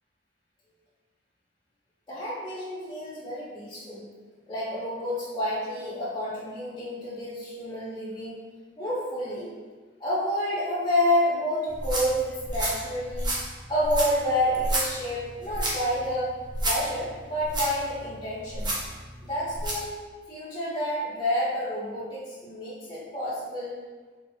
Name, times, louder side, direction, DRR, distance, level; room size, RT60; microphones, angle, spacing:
voice 1, 2.1-4.0 4.5-8.4 8.8-9.5 10.0-13.3 13.7-16.3 16.6-18.7 19.3-20.0 20.3-23.8, left 1 dB, 25° left, -10 dB, 1.4 m, -29 dB
sound 1, 11.7-19.9, right 1 dB, 25° right, 0.9 m, -32 dB
4.4 x 4.1 x 2.9 m, 1.4 s
head